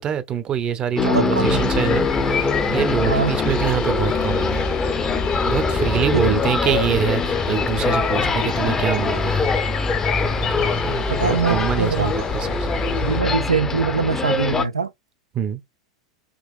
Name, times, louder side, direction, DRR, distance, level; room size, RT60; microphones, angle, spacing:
voice 1, 0.0-4.6 5.4-9.5 10.5-12.7 15.3-15.6, right 9 dB, 35° right, 0.6 m, -25 dB
sound 1, 1.0-14.6, left 4 dB, 20° left, 0.6 m, -23 dB
voice 2, 1.0-1.6 3.1-3.3 6.1-6.4 11.1-12.1 13.0-14.9, right 5 dB, 85° right, 0.4 m, -22 dB
sound 2, 1.4-13.2, left 3 dB, 45° left, 0.9 m, -29 dB
3.9 x 2.8 x 2.4 m
figure-of-eight pair, 85°, 3 cm